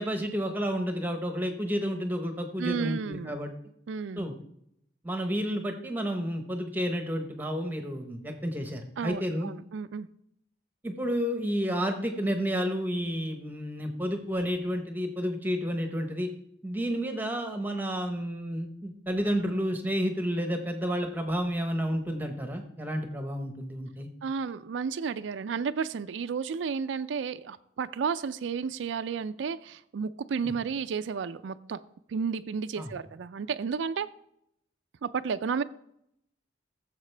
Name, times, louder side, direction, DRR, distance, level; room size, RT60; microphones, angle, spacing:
voice 1, 0.0-3.5 4.2-4.3 5.0-9.5 10.8-16.3 16.6-24.1 30.4-30.5 32.8-32.9, equal, 10° right, 5 dB, 0.9 m, -31 dB
voice 2, 2.6-3.4 3.9-4.3 9.0-10.1 24.2-31.8 32.1-34.1 35.0-35.6, right 6 dB, 75° right, 11 dB, 0.4 m, -32 dB
15.0 x 7.3 x 3.3 m, 0.75 s
head